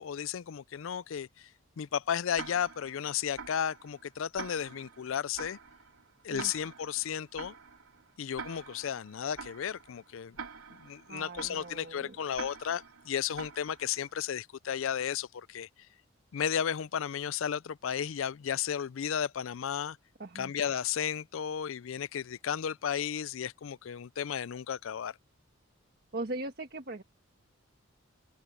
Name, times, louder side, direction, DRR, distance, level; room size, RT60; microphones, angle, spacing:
voice 1, 0.0-1.5 1.8-5.6 6.2-7.5 8.2-10.4 10.7-15.7 16.3-20.0 20.3-25.2, left 8 dB, 70° left, 0.4 m, -34 dB
Tick-tock, 2.4-14.2, right 5 dB, 85° right, 3.3 m, -47 dB
voice 2, 11.1-12.2 20.2-20.5 26.1-27.0, right 2 dB, 50° right, 1.3 m, -39 dB
open air
head